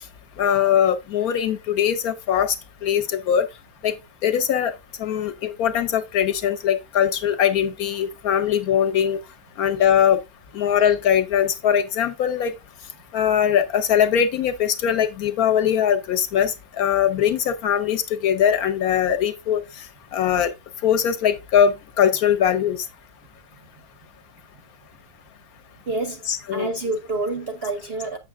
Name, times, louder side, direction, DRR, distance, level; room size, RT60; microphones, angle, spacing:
voice 1, 0.4-2.5 2.8-3.5 3.8-3.9 4.2-4.7 5.0-9.2 9.6-10.2 10.5-12.5 13.1-19.6 20.1-20.5 20.8-22.9 26.3-26.7, left 9 dB, 60° left, 1.4 m, -21 dB
voice 2, 25.9-28.2, right 2 dB, 50° right, 0.7 m, -28 dB
7.6 x 6.5 x 3.4 m
omnidirectional pair, 1.9 m